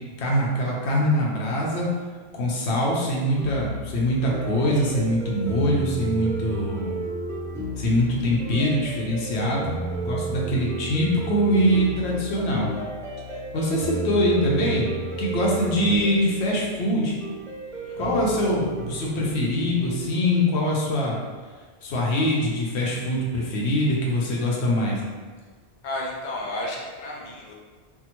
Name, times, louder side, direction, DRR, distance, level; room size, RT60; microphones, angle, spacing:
voice 1, 0.2-1.9 2.3-6.9 7.8-9.7 10.0-12.7 13.5-14.9 15.2-17.2 18.0-21.2 21.8-25.0, equal, 85° left, -3 dB, 1.0 m, -23 dB
sound 1, 3.4-20.1, right 2 dB, 5° left, 0.5 m, -32 dB
voice 2, 17.8-18.1 25.8-27.5, left 1 dB, 55° left, -2 dB, 0.6 m, -32 dB
3.5 x 2.1 x 2.9 m, 1.5 s
omnidirectional pair, 1.1 m